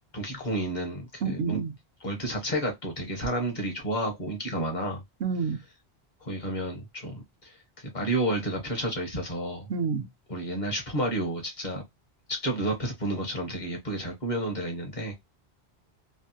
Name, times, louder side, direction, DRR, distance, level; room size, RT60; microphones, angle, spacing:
voice 1, 0.1-1.6 2.0-5.0 6.2-9.7 10.3-11.8 12.3-15.1, right 1 dB, 45° left, 1.2 m, -31 dB
voice 2, 1.2-1.7 5.2-5.6 9.7-10.1, right 5 dB, 80° right, 0.9 m, -28 dB
3.2 x 2.2 x 2.7 m
omnidirectional pair, 1.1 m